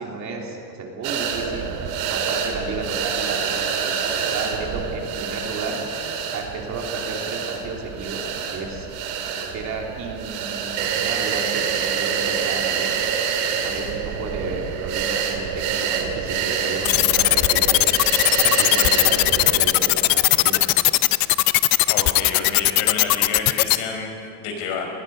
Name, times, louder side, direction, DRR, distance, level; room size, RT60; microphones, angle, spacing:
voice 1, 0.0-5.8 6.3-8.9 9.2-13.0 13.6-17.9 18.4-20.7, right 3 dB, 35° right, 0 dB, 3.2 m, -33 dB
sound 1, 1.0-19.6, right 7 dB, 60° right, 3.1 m, -26 dB
sound 2, 16.8-23.8, left 18 dB, 45° left, 0.5 m, -17 dB
voice 2, 21.9-24.9, left 5 dB, 70° left, 3 dB, 5.0 m, -29 dB
27.0 x 20.5 x 5.4 m, 2.5 s
cardioid pair, 160°, 50 cm